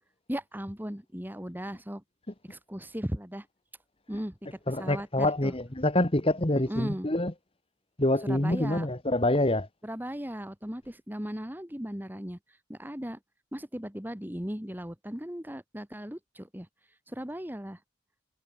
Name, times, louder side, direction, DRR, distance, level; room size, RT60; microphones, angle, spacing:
voice 1, 0.3-2.0 2.5-3.5 4.1-5.5 6.7-7.1 8.2-8.9 9.8-12.4 12.7-13.2 13.5-16.7 17.1-17.8, equal, 10° right, 2.0 m, -37 dB
voice 2, 4.7-7.3 8.0-9.7, left 1 dB, 25° left, 1.6 m, -26 dB
head